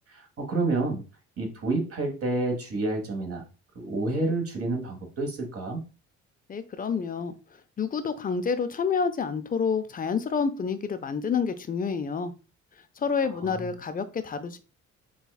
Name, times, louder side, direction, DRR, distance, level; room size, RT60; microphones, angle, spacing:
voice 1, 0.1-1.0 1.4-3.4 3.7-5.8 13.2-13.7, right 2 dB, 50° right, 3 dB, 1.4 m, -29 dB
voice 2, 6.5-7.3 7.8-12.3 13.0-14.6, left 5 dB, 30° left, 10 dB, 0.5 m, -28 dB
5.5 x 2.4 x 2.3 m, 0.32 s
cardioid pair, 90°, 30 cm